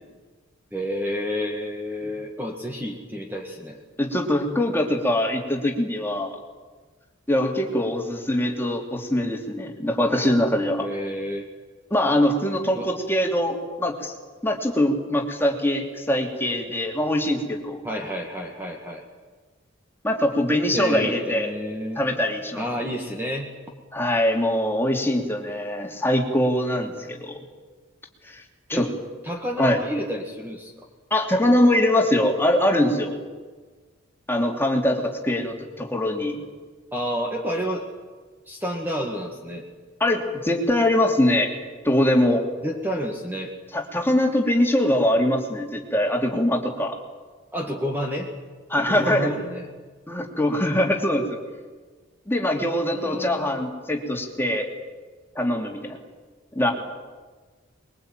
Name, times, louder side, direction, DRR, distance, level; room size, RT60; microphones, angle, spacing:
voice 1, 0.7-3.8 10.8-11.5 12.7-12.9 17.8-19.0 20.7-22.0 22.6-23.5 28.7-28.9 29.2-30.7 36.9-37.9 38.5-39.6 42.6-43.5 47.5-48.3 48.8-49.7 52.9-53.6, equal, 10° right, 1 dB, 2.1 m, -30 dB
voice 2, 4.0-6.4 7.3-10.9 11.9-14.1 14.4-17.8 20.0-21.5 22.0-22.6 23.9-27.4 28.2-28.4 28.7-28.9 29.6-29.8 31.1-33.2 34.3-36.4 40.0-41.5 41.8-42.5 43.7-47.0 48.7-49.3 50.1-51.4 52.3-54.7 55.3-56.0 56.5-56.7, left 1 dB, 10° left, 1 dB, 3.0 m, -22 dB
24.5 x 22.5 x 9.2 m, 1.4 s
head